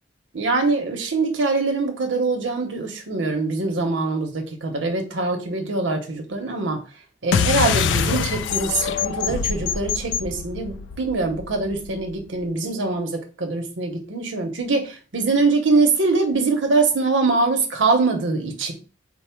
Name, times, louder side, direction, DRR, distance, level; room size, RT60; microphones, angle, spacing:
voice 1, 0.3-6.8 7.2-18.7, right 3 dB, 90° right, 3 dB, 0.9 m, -23 dB
sound 1, 7.3-12.2, left 7 dB, 75° left, 0.3 m, -24 dB
4.5 x 2.0 x 4.4 m, 0.34 s
head